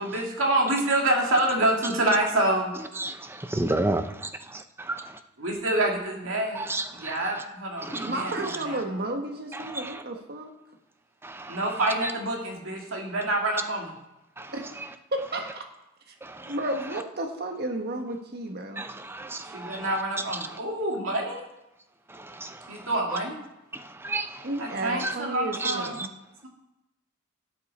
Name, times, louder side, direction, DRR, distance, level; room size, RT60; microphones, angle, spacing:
voice 1, 0.0-2.7 5.4-6.7 7.0-8.3 8.6-8.8 11.5-13.9 19.5-21.4 22.7-23.4 24.6-25.9, right 1 dB, 70° right, 2.4 m, -27 dB
voice 2, 3.4-5.2 6.5-7.3 7.8-8.1 9.5-10.0 11.2-11.6 14.4-14.5 16.2-16.5 18.8-20.0 20.4-20.5 22.1-22.9 23.7-24.5 25.0-25.2 25.6-25.8, right 2 dB, 10° right, 0.6 m, -32 dB
voice 3, 8.0-10.5 14.5-14.6 15.1-15.6 16.1-16.2 16.5-18.8 24.4-26.1, right 1 dB, 50° right, 1.4 m, -32 dB
17.0 x 7.6 x 4.3 m
head